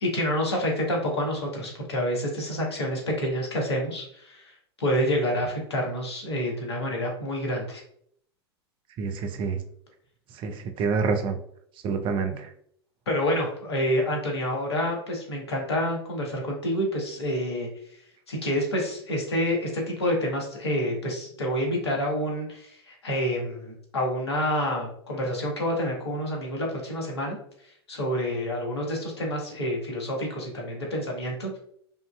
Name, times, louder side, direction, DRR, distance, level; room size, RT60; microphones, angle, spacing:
voice 1, 0.0-4.5 4.8-7.8 12.3-12.4 13.1-17.7 18.3-27.4 27.9-31.6, equal, 75° left, -1 dB, 1.4 m, -28 dB
voice 2, 9.0-9.6 10.4-11.4 11.8-12.3, right 5 dB, 35° right, 6 dB, 0.6 m, -27 dB
5.3 x 2.7 x 2.3 m, 0.66 s
figure-of-eight pair, 90°, 14 cm